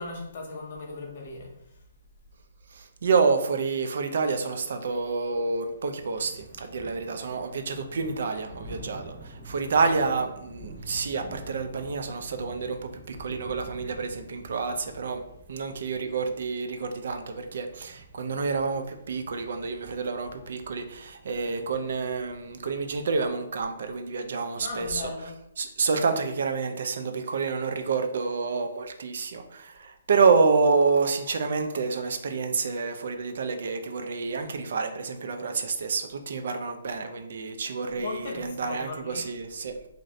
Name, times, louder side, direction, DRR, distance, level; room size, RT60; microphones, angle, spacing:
voice 1, 0.0-1.5 24.6-25.3 37.9-39.3, left 3 dB, 40° left, -1 dB, 0.7 m, -37 dB
voice 2, 2.7-12.8 13.1-15.2 15.5-25.1 25.6-39.7, right 4 dB, 55° right, 6 dB, 0.3 m, -28 dB
Thunder / Rain, 4.9-23.3, right 1 dB, 25° right, 1.0 m, -48 dB
2.5 x 2.5 x 3.1 m, 0.79 s
hypercardioid pair, 175°, 0 cm